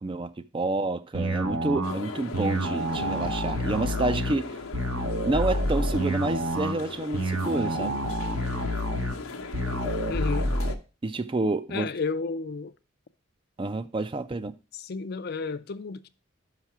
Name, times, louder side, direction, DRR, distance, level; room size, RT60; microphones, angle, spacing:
voice 1, 0.0-4.6 5.2-8.0 11.0-11.9 13.6-14.5, right 2 dB, 25° right, 0.4 m, -29 dB
sound 1, 1.1-10.7, equal, 75° right, 1.3 m, -29 dB
sound 2, 1.8-10.7, left 3 dB, 90° left, 0.8 m, -38 dB
voice 2, 10.1-10.5 11.7-12.7 14.7-16.1, left 4 dB, 45° left, 0.4 m, -32 dB
5.7 x 5.7 x 5.9 m
head